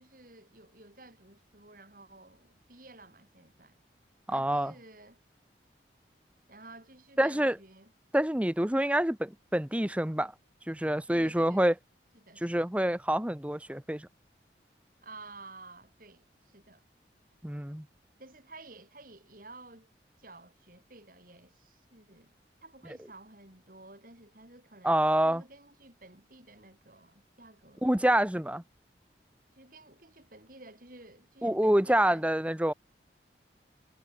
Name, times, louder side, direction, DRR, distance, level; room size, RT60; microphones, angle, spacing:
voice 1, 0.0-3.8 4.3-5.2 6.5-7.9 11.1-11.7 12.1-12.7 15.0-16.8 18.2-19.9 20.2-22.3 22.6-24.9 25.2-27.9 29.5-32.3, right 2 dB, 50° right, 6.7 m, -52 dB
voice 2, 4.3-4.7 7.2-7.6 8.1-10.3 10.7-11.7 12.4-14.1 17.4-17.8 24.8-25.4 27.8-28.6 31.4-32.7, right 1 dB, 5° right, 0.9 m, -27 dB
head